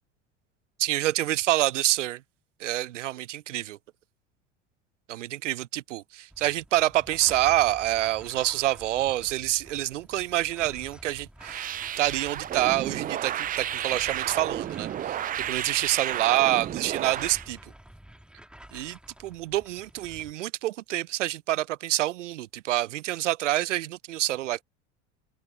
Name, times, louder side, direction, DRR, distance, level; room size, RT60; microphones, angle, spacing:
voice 1, 0.8-2.2 2.6-3.8 5.1-15.2 15.5-17.7 18.7-24.6, right 14 dB, 80° right, 0.8 m, -27 dB
sound 1, 6.3-20.3, right 1 dB, 5° right, 2.4 m, -50 dB
sound 2, 11.4-17.5, right 11 dB, 25° right, 0.4 m, -32 dB
open air
hypercardioid pair, 80°, 36 cm